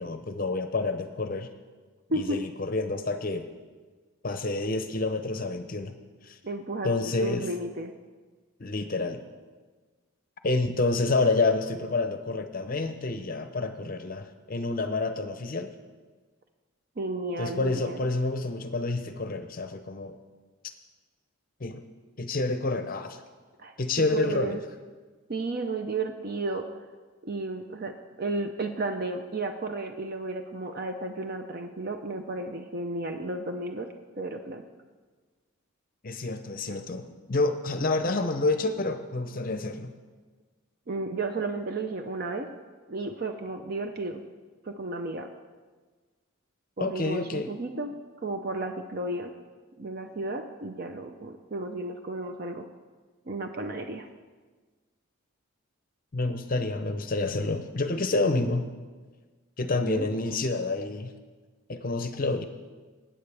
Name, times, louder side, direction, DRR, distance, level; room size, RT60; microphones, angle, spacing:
voice 1, 0.0-1.5 2.1-3.5 4.2-5.9 6.2-6.4 6.8-7.5 8.6-9.2 10.4-15.7 17.4-20.2 21.6-21.8 22.2-23.2 23.8-24.6 36.0-39.9 46.8-47.5 56.1-58.7 59.6-61.1 61.7-62.4, left 3 dB, 40° left, 8 dB, 0.6 m, -28 dB
voice 2, 6.4-7.9 17.0-18.0 23.6-23.7 24.1-24.6 25.3-26.7 27.2-33.9 34.2-34.6 40.9-42.5 42.9-44.2 44.6-45.3 46.8-47.9 48.2-49.3 49.8-52.7 53.3-54.1 59.9-60.1, right 2 dB, 45° right, 5 dB, 0.6 m, -33 dB
19.5 x 8.8 x 3.4 m, 1.4 s
head